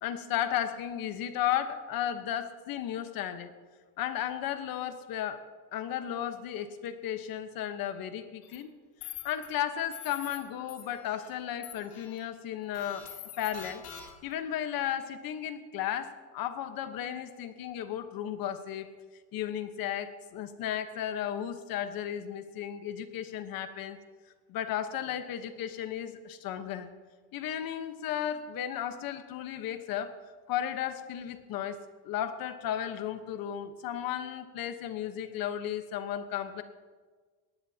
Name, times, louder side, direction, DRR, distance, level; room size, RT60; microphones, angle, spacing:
voice 1, 0.0-3.5 4.0-5.5 5.7-8.7 9.0-13.1 13.4-13.9 14.2-18.9 19.3-24.0 24.5-26.9 27.3-30.2 30.5-31.8 32.0-36.6, left 10 dB, 45° left, 9 dB, 1.2 m, -34 dB
sound 1, 8.4-8.6 9.0-9.5 9.9-10.4 10.7-11.3 11.6-12.2 12.7-14.3, left 10 dB, 70° left, 3.7 m, -45 dB
20.0 x 18.0 x 2.9 m, 1.5 s
cardioid pair, 170°, 50 cm